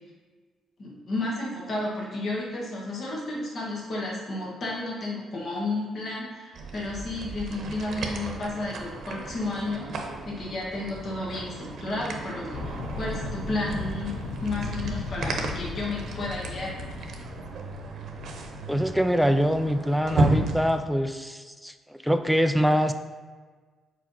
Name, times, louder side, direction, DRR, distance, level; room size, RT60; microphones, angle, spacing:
voice 1, 0.8-14.1 14.4-16.8, left 2 dB, 50° left, -4 dB, 1.7 m, -32 dB
sound 1, 6.5-20.8, right 2 dB, 65° right, 0.9 m, -34 dB
sound 2, 12.5-17.8, left 4 dB, 90° left, 0.5 m, -36 dB
voice 2, 18.7-22.9, equal, ahead, 7 dB, 0.3 m, -24 dB
4.8 x 4.4 x 5.5 m, 1.4 s
cardioid pair, 90°, 0 cm